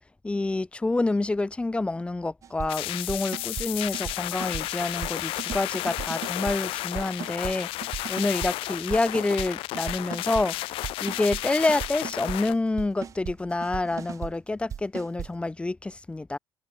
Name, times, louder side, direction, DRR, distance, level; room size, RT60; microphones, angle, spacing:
voice 1, 0.2-16.4, left 2 dB, 10° left, 0.9 m, -28 dB
sound 1, 2.4-2.7 3.1-3.7 3.9-5.1 5.4-6.6 6.9-7.5 7.8-8.5 8.9-9.5 9.7-10.5 10.8-11.4 11.7-12.4 12.8-13.4 13.6-14.3 14.7-15.3, right 8 dB, 35° right, 0.4 m, -36 dB
sound 2, 2.7-12.5, left 18 dB, 75° left, 0.6 m, -33 dB
cardioid pair, 115°, 9 cm